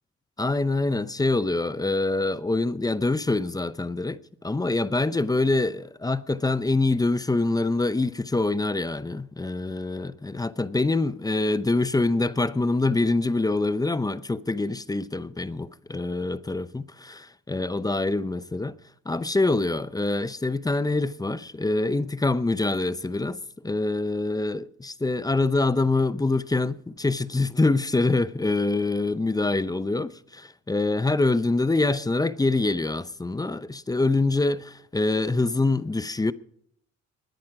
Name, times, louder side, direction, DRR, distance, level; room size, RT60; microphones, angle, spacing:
voice 1, 0.4-18.8 19.1-36.3, left 2 dB, 10° left, 0.6 m, -25 dB
20.0 x 10.5 x 4.9 m
cardioid pair, 90°, 30 cm